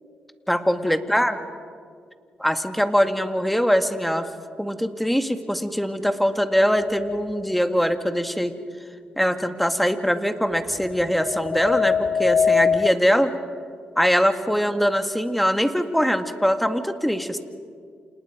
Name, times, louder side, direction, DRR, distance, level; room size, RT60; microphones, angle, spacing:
voice 1, 0.5-1.4 2.4-4.3 4.6-8.5 9.2-13.3 14.0-17.4, equal, ahead, 7 dB, 2.1 m, -22 dB
sound 1, 6.8-7.5 10.8-12.9, left 6 dB, 55° left, 0.5 m, -23 dB
29.0 x 28.0 x 5.2 m, 2.1 s
supercardioid pair, 55°, 3 cm